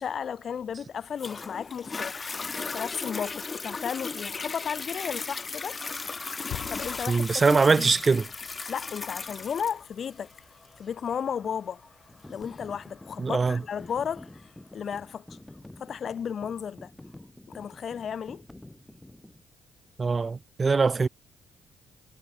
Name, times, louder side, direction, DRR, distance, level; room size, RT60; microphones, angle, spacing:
voice 1, 0.0-2.4 2.7-5.8 6.7-7.9 8.7-10.3 10.8-11.8 12.3-14.3 14.7-15.4 15.8-16.9 17.5-18.4, left 7 dB, 55° left, 2.4 m, -34 dB
Toilet flush, 1.2-14.2 14.8-14.9, left 4 dB, 30° left, 3.7 m, -37 dB
sound 1, 6.5-11.0, left 12 dB, 80° left, 1.9 m, -46 dB
voice 2, 7.1-8.3 13.2-13.6 20.0-21.1, right 4 dB, 30° right, 1.7 m, -22 dB
sound 2, 12.1-19.4, left 1 dB, 10° left, 7.1 m, -49 dB
cardioid pair, 90°, 0 cm